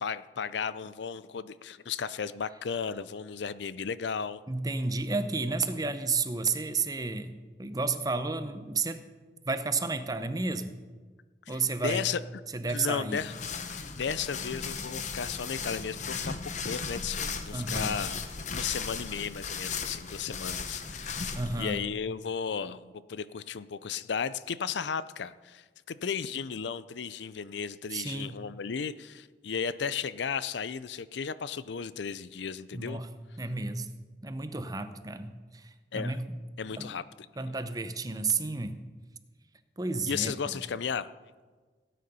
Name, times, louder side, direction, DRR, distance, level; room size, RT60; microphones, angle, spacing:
voice 1, 0.0-4.4 11.5-12.2 12.7-13.3 13.7-16.3 16.6-18.2 18.5-21.3 21.6-33.0 35.9-36.2 36.6-37.0 40.1-41.1, left 6 dB, 75° left, 16 dB, 0.5 m, -34 dB
voice 2, 4.5-9.1 9.5-10.7 11.5-12.1 12.5-13.2 17.5-18.0 21.3-21.8 27.9-28.5 32.7-33.1 33.4-33.9 34.2-36.3 36.8-36.9 37.4-38.8 39.8-40.6, right 3 dB, 20° right, 10 dB, 0.7 m, -32 dB
sound 1, 13.1-21.6, left 5 dB, 40° left, 0.9 m, -36 dB
17.0 x 9.5 x 5.4 m, 1.4 s
head